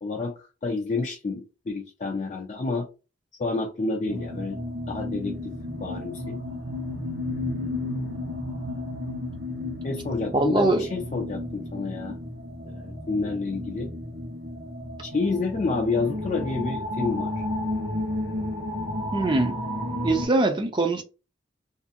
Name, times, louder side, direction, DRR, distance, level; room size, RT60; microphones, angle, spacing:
voice 1, 0.0-2.9 3.4-4.6 4.9-5.5 5.8-6.4 9.8-12.2 12.7-13.9 15.0-17.3, left 3 dB, 40° left, 0.4 m, -29 dB
sound 1, 4.1-20.3, left 1 dB, 55° right, 0.9 m, -32 dB
voice 2, 10.3-10.9 19.1-19.6 20.0-21.0, right 2 dB, 25° right, 0.4 m, -22 dB
2.6 x 2.5 x 2.5 m
head